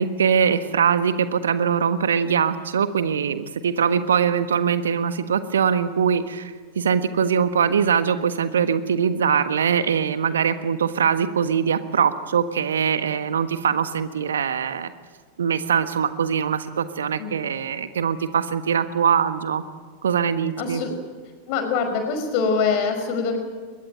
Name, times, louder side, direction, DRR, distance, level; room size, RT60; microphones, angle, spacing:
voice 1, 0.0-14.9 15.4-19.6 20.0-20.8, right 7 dB, 65° right, 11 dB, 1.4 m, -22 dB
voice 2, 20.6-20.9 21.5-23.4, left 5 dB, 45° left, 7 dB, 5.5 m, -24 dB
22.5 x 21.0 x 9.2 m, 1.5 s
figure-of-eight pair, 90°, 0 cm